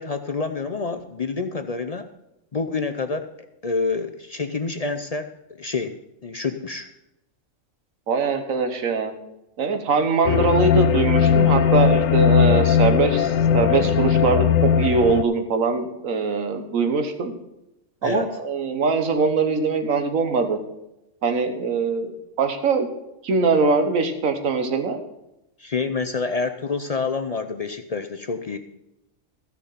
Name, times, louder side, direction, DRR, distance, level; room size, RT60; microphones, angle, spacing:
voice 1, 0.0-2.0 2.5-3.3 3.6-5.3 5.6-6.9 18.0-18.4 25.6-28.6, left 4 dB, 45° left, 7 dB, 0.5 m, -27 dB
voice 2, 8.1-9.1 9.6-17.3 18.0-20.6 21.2-22.9 23.2-25.0, right 4 dB, 80° right, 7 dB, 1.6 m, -22 dB
sound 1, 10.2-15.2, left 7 dB, 80° left, 1.0 m, -18 dB
14.0 x 6.7 x 5.7 m, 0.90 s
omnidirectional pair, 1.4 m